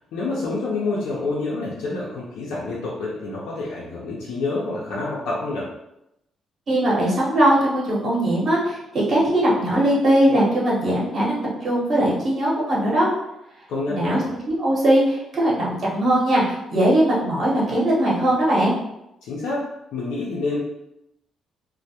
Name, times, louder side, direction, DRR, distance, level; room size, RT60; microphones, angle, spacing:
voice 1, 0.1-5.7 13.7-14.3 19.2-20.6, left 3 dB, 85° left, -6 dB, 0.5 m, -28 dB
voice 2, 6.7-13.1 13.9-14.2 14.5-18.8, right 1 dB, 50° right, -5 dB, 0.9 m, -20 dB
2.2 x 2.1 x 2.7 m, 0.86 s
cardioid pair, 90°, 0 cm